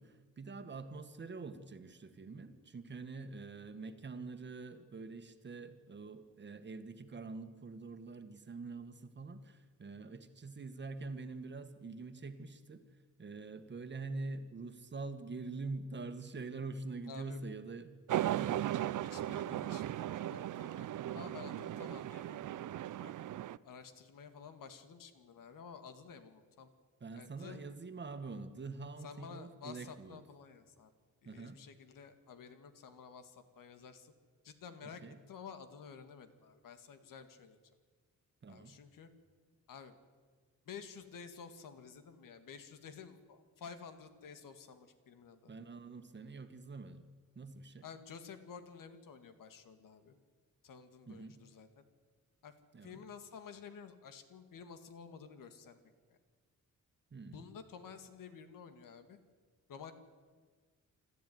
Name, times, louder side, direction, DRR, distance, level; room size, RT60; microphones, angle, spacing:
voice 1, 0.0-12.8 13.2-17.9 18.4-18.5 27.0-30.2 31.2-31.6 34.8-35.2 38.4-38.8 45.5-47.0 47.3-47.8 51.1-51.4 52.7-53.0 57.1-57.4, right 3 dB, 35° right, 8 dB, 1.6 m, -45 dB
voice 2, 17.1-17.4 19.0-23.1 23.6-26.7 27.1-27.6 29.0-30.9 31.2-34.1 34.4-35.0 35.3-37.6 38.5-39.1 39.7-39.9 40.7-45.5 47.8-50.2 50.6-51.8 52.4-55.8 56.1-56.2 57.2-59.2 59.7-59.9, left 6 dB, 85° left, 9 dB, 2.0 m, -52 dB
sound 1, 18.1-23.6, right 12 dB, 70° right, 0.6 m, -37 dB
26.0 x 13.5 x 9.4 m, 1.5 s
wide cardioid pair, 145°, 32 cm